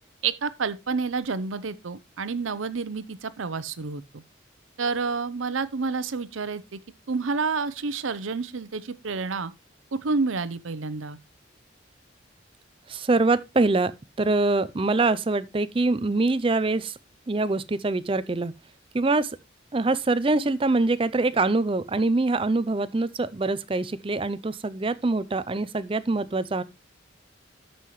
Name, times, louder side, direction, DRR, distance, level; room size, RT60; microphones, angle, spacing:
voice 1, 0.2-4.2 4.8-6.8 7.1-9.5 9.9-11.2, right 4 dB, 90° right, 0.7 m, -29 dB
voice 2, 12.9-13.9 14.2-16.9 17.3-18.5 18.9-19.3 19.7-26.6, right 3 dB, 25° right, 0.5 m, -24 dB
13.5 x 5.6 x 3.1 m
head